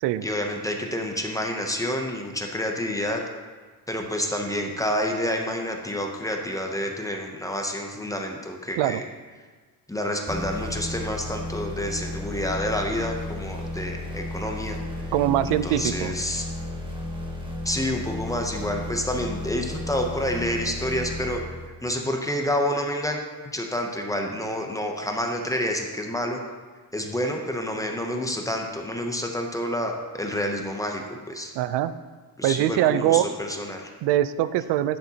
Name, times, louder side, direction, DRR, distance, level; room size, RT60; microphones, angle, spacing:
voice 1, 0.2-3.2 3.9-9.0 9.9-15.0 15.6-16.4 17.6-21.4 21.8-23.2 23.4-26.4 26.9-31.5 32.4-33.9, left 1 dB, 10° left, 2 dB, 0.6 m, -28 dB
sound 1, 10.3-22.0, left 2 dB, 10° right, 1.1 m, -34 dB
voice 2, 15.1-16.1 31.5-31.9 32.4-33.3 34.0-35.0, right 12 dB, 90° right, 14 dB, 0.5 m, -22 dB
9.7 x 7.6 x 2.8 m, 1.4 s
cardioid pair, 145°, 40 cm